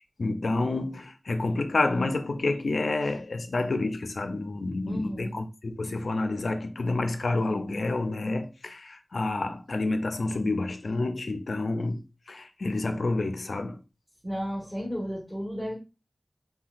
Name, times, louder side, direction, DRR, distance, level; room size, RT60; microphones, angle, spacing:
voice 1, 0.0-13.8, left 2 dB, 90° left, 0.4 m, -29 dB
voice 2, 4.9-5.3 14.2-15.8, equal, 5° left, 1.4 m, -33 dB
3.8 x 2.1 x 2.4 m
wide cardioid pair, 40°, 0 cm